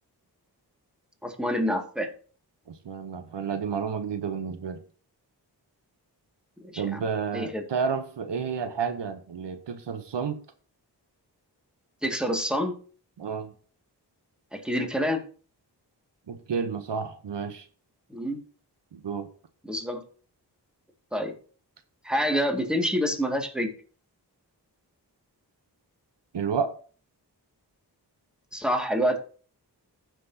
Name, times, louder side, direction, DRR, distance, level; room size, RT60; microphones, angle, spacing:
voice 1, 1.2-2.1 6.6-6.8 7.3-7.6 12.0-12.8 14.5-15.2 18.1-18.4 19.7-20.0 21.1-21.3 22.0-23.7 28.5-29.2, equal, ahead, 2.0 m, -27 dB
voice 2, 2.7-4.8 6.8-10.4 13.2-13.5 16.3-17.7 18.9-19.3 26.3-26.7, right 6 dB, 80° right, 0.9 m, -31 dB
15.5 x 6.0 x 2.8 m
cardioid pair, 50°, 42 cm